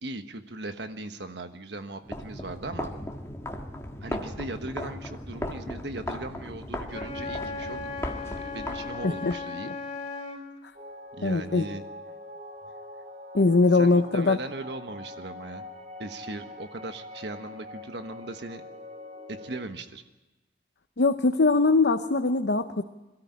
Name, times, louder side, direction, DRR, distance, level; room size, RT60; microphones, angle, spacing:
voice 1, 0.0-2.9 4.0-7.8 8.1-9.7 11.2-11.8 13.7-15.6 16.0-18.6 19.3-20.0, right 2 dB, 70° right, 8 dB, 1.4 m, -38 dB
sound 1, 2.0-9.4, left 1 dB, 15° left, 1.5 m, -37 dB
Wind instrument woodwind instrument, 6.9-10.5, left 4 dB, 35° left, 4.0 m, -36 dB
sound 2, 10.7-19.6, left 1 dB, 40° right, 3.1 m, -44 dB
voice 2, 11.2-11.7 13.3-14.4 21.0-22.8, left 3 dB, 65° left, 7 dB, 0.7 m, -21 dB
22.0 x 13.5 x 9.9 m, 1.1 s
head